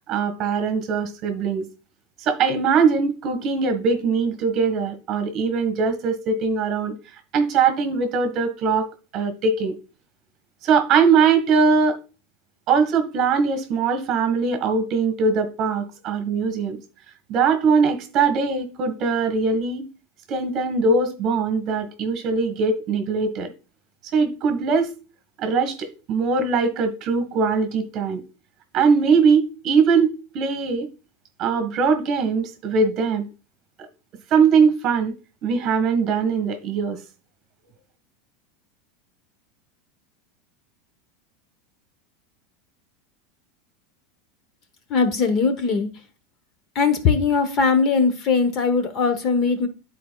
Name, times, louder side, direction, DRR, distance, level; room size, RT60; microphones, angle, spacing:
voice 1, 0.1-1.6 2.2-7.0 7.3-8.9 9.1-9.7 10.6-12.0 12.7-16.8 17.3-19.9 20.3-23.5 24.1-24.9 25.4-28.2 28.7-30.9 31.4-33.3 34.3-35.1 35.4-37.0, right 5 dB, 35° right, 1.3 m, -21 dB
voice 2, 44.9-45.9 46.7-49.7, left 5 dB, 35° left, 0.9 m, -20 dB
12.5 x 4.3 x 2.3 m
supercardioid pair, 150°, 0 cm